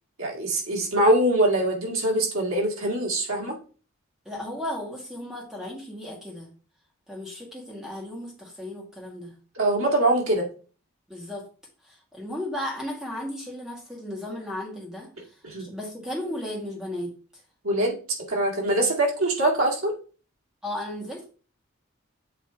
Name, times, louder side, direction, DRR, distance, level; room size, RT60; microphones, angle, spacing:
voice 1, 0.2-3.6 9.6-10.5 15.4-15.7 17.6-18.0 18.3-19.9, right 1 dB, 85° right, -1 dB, 2.1 m, -23 dB
voice 2, 4.2-6.5 7.1-9.3 11.1-11.4 11.8-17.1 20.6-21.2, left 1 dB, 5° right, -2 dB, 1.8 m, -35 dB
7.7 x 3.3 x 4.4 m, 0.38 s
head